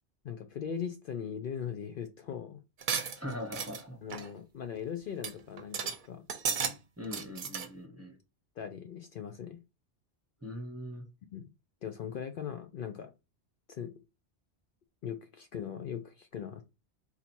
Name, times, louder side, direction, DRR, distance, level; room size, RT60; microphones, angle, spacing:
voice 1, 0.2-2.6 4.0-6.2 8.6-9.6 11.3-11.5 11.8-13.1 13.7-13.9 15.0-16.6, left 8 dB, 60° left, 8 dB, 0.7 m, -39 dB
sound 1, 2.8-3.8 4.1-4.3 4.8-4.9 5.2-5.3 5.6-6.0 6.3-6.7 7.0-7.7, right 6 dB, 55° right, 0.7 m, -34 dB
voice 2, 3.2-4.0 7.0-8.2 10.4-11.0, left 1 dB, 15° right, 2 dB, 0.9 m, -41 dB
4.0 x 2.8 x 4.3 m, 0.26 s
omnidirectional pair, 1.1 m